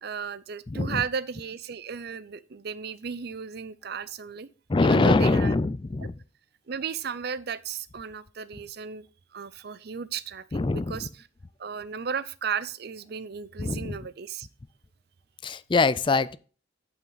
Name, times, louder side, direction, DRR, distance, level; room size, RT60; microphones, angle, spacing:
voice 1, 0.0-4.5 4.8-5.6 6.7-9.1 9.3-11.3 11.6-14.5, right 6 dB, 60° right, 0.5 m, -34 dB
voice 2, 0.7-1.0 4.7-6.2 10.5-11.0 13.6-14.0 15.4-16.4, left 3 dB, 25° left, 0.4 m, -23 dB
11.5 x 5.8 x 4.0 m
head